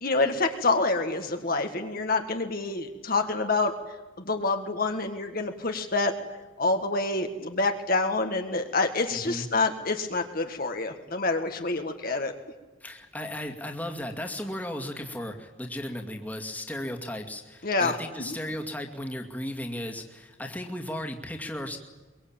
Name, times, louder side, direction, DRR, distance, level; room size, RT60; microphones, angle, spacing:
voice 1, 0.0-3.7 4.3-6.1 6.6-12.3 17.6-18.3, left 3 dB, 45° left, 5 dB, 1.8 m, -27 dB
voice 2, 9.1-9.5 12.8-21.8, left 1 dB, 10° left, 3 dB, 2.3 m, -35 dB
23.5 x 23.0 x 8.9 m, 1.2 s
head